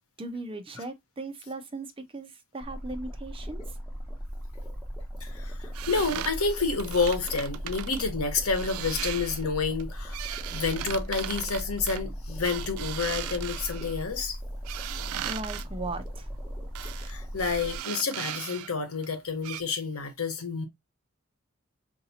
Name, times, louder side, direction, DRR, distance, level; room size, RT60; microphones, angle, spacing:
voice 1, 0.2-3.6 15.2-16.3, right 2 dB, 25° right, 0.5 m, -38 dB
sound 1, 2.6-17.8, equal, 5° left, 1.3 m, -38 dB
voice 2, 5.2-14.4 17.0-20.6, left 4 dB, 85° left, 1.1 m, -29 dB
sound 2, 5.7-8.0 8.5-9.4 9.8-14.0 14.6-15.6 16.7-17.1 17.4-18.7 19.0-19.1 19.4-19.6, right 11 dB, 85° right, 0.4 m, -38 dB
4.9 x 2.6 x 2.7 m
head